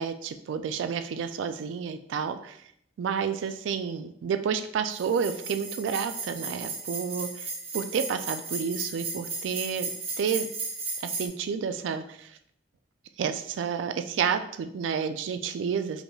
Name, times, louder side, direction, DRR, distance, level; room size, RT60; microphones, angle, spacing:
voice 1, 0.0-2.6 3.0-9.9 10.2-10.5 11.0-12.4 13.2-16.0, right 6 dB, 85° right, 9 dB, 0.3 m, -30 dB
sound 1, 4.9-11.3, right 4 dB, 35° right, 0.9 m, -35 dB
5.0 x 3.1 x 2.3 m, 0.69 s
head